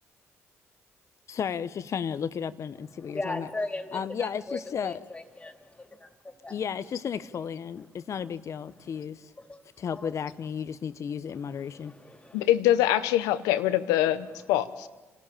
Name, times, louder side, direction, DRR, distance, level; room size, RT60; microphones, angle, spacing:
voice 1, 1.3-3.5 3.9-5.0 6.5-9.3 9.8-11.9, left 7 dB, 55° left, 0.9 m, -33 dB
voice 2, 3.0-6.6 8.8-9.0 9.4-9.6 9.9-10.1 11.3-12.5, left 2 dB, 20° left, 2.9 m, -39 dB
voice 3, 12.3-14.9, left 13 dB, 90° left, 0.8 m, -24 dB
27.0 x 13.5 x 8.9 m
supercardioid pair, 55°, 6 cm